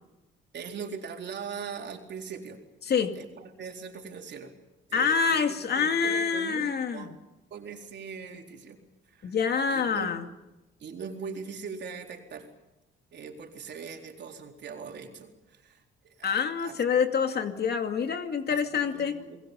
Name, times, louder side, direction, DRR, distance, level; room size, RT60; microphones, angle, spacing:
voice 1, 0.5-2.6 3.2-4.5 4.9-5.4 5.7-7.1 7.5-8.8 9.1-9.4 9.7-10.2 10.8-12.5 13.1-15.8 16.2-16.8 18.5-19.4, right 5 dB, 60° right, 2 dB, 4.1 m, -41 dB
voice 2, 2.9-3.2 4.9-7.1 9.2-10.3 16.2-19.2, left 6 dB, 55° left, 6 dB, 2.4 m, -26 dB
29.5 x 22.0 x 5.4 m, 0.99 s
cardioid pair, 90°, 20 cm